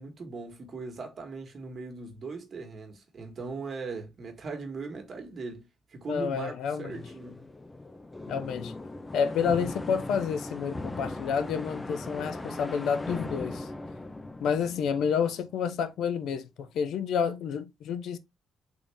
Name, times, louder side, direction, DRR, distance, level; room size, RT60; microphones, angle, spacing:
voice 1, 0.0-5.6 5.9-7.5, right 4 dB, 45° right, 1.3 m, -39 dB
voice 2, 6.1-7.0 8.3-8.8 9.1-13.7 14.4-18.2, left 7 dB, 75° left, 0.4 m, -29 dB
sound 1, 6.9-15.7, left 2 dB, 20° left, 0.4 m, -39 dB
3.5 x 2.6 x 3.3 m
cardioid pair, 90°, 0 cm